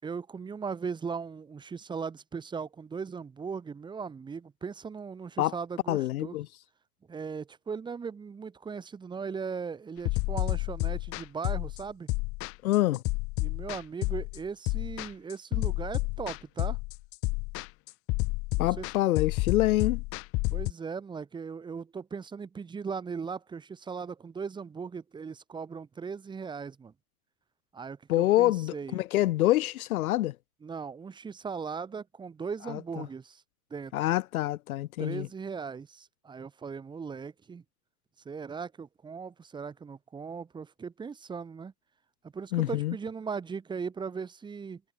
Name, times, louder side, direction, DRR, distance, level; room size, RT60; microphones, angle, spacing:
voice 1, 0.0-6.4 7.1-12.1 13.4-16.8 18.6-18.9 20.5-26.9 27.7-29.0 30.6-33.4 33.7-33.9 35.0-37.6 38.3-41.7 42.2-44.8, right 5 dB, 10° right, 3.8 m, -38 dB
voice 2, 5.9-6.5 12.6-13.0 18.6-20.0 28.1-30.4 32.7-33.1 33.9-35.3 42.5-42.9, left 15 dB, 60° left, 1.9 m, -26 dB
sound 1, 10.0-20.7, left 24 dB, 25° left, 2.5 m, -30 dB
supercardioid pair, 180°, 48 cm